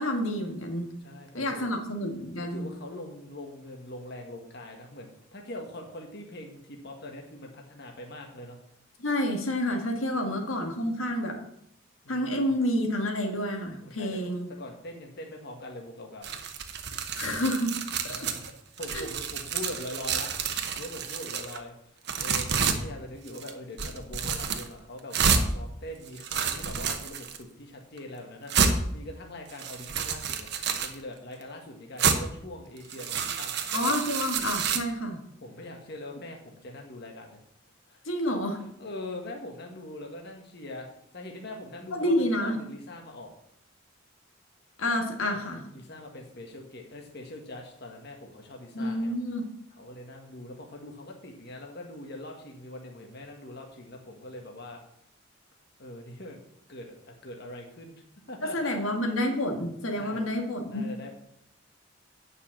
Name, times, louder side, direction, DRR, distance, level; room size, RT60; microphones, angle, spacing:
voice 1, 0.0-0.9 1.3-2.7 9.0-11.4 12.1-14.5 16.9-17.8 18.0-18.3 18.9-19.1 33.7-35.2 38.1-38.6 41.9-42.6 44.8-45.6 48.7-49.4 58.4-60.9, left 1 dB, 90° left, 3 dB, 1.8 m, -29 dB
voice 2, 1.0-1.7 2.4-8.6 10.1-10.3 12.0-12.5 13.8-16.3 18.0-18.4 18.8-21.7 22.2-30.5 30.8-34.0 35.4-37.4 37.9-38.3 38.8-40.9 41.1-43.3 45.3-45.5 45.7-49.1 49.8-54.8 55.8-56.4 56.7-58.0 58.3-58.7 59.9-60.2 60.7-61.1, left 1 dB, 55° left, 2 dB, 1.5 m, -42 dB
sound 1, 16.2-18.5 18.8-21.6 22.1-22.8 23.3-23.5 23.8-24.7 25.1-25.4 26.1-27.4 28.0-28.1 28.5-28.7 29.5-30.9 32.0-32.2 32.8-34.8, right 6 dB, 55° right, 1.1 m, -29 dB
9.5 x 5.7 x 7.3 m, 0.75 s
head